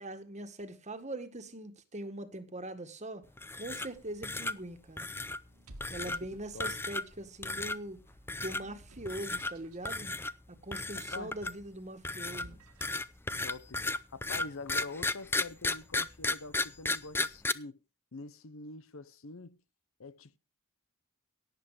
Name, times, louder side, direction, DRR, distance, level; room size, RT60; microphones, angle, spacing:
voice 1, 0.0-3.3 3.6-5.1 5.9-8.0 8.4-10.1 10.5-12.6, right 1 dB, 30° right, 1.8 m, -42 dB
sound 1, 3.4-4.0 4.2-4.5 5.0-5.4 5.8-6.2 6.6-7.1 7.4-7.8 8.3-8.6 9.0-9.5 9.8-10.3 10.7-11.6 12.0-17.5, left 2 dB, 10° left, 0.5 m, -34 dB
sound 2, 4.2-4.6 5.4-6.8 7.5-9.9 12.2-13.2, right 1 dB, 75° right, 2.0 m, -55 dB
voice 2, 6.0-6.7 10.9-11.4 13.4-17.8 18.1-19.6 20.0-20.4, left 3 dB, 65° left, 0.9 m, -45 dB
17.5 x 7.8 x 5.0 m
head